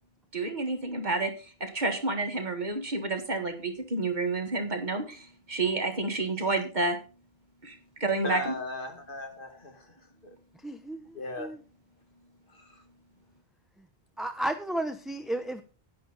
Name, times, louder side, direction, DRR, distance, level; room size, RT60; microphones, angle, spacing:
voice 1, 0.3-7.0 7.6-8.5, right 3 dB, 45° right, 1.8 m, -30 dB
voice 2, 8.2-9.9 10.2-10.3 11.1-11.5 12.5-12.8, left 2 dB, 60° left, 2.2 m, -37 dB
voice 3, 10.6-11.0 11.4-11.6 14.2-15.6, right 1 dB, ahead, 0.6 m, -32 dB
10.5 x 10.0 x 4.0 m
omnidirectional pair, 1.0 m